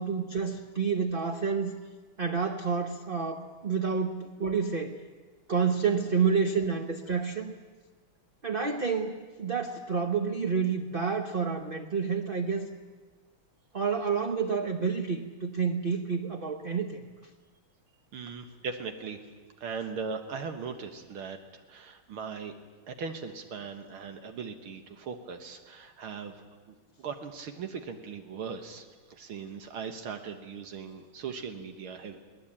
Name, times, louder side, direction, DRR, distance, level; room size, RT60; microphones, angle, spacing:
voice 1, 0.0-1.7 2.2-5.0 5.5-7.5 8.4-12.7 13.7-17.0, right 5 dB, 35° right, 3 dB, 0.9 m, -29 dB
voice 2, 18.1-19.2 19.6-22.5 22.9-32.2, right 5 dB, 80° right, 6 dB, 2.2 m, -39 dB
23.0 x 18.5 x 8.7 m, 1.4 s
omnidirectional pair, 2.3 m